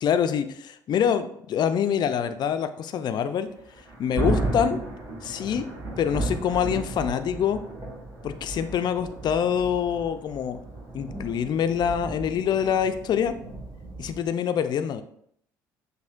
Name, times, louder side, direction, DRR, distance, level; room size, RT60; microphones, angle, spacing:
voice 1, 0.0-3.5 4.0-4.8 5.2-5.7 6.0-7.6 8.2-10.6 10.9-13.4 14.0-15.0, left 8 dB, 50° left, 10 dB, 0.4 m, -25 dB
Thunder, 3.6-14.3, right 2 dB, 40° right, 1.5 m, -34 dB
6.1 x 2.6 x 2.4 m, 0.68 s
hypercardioid pair, 60°, 9 cm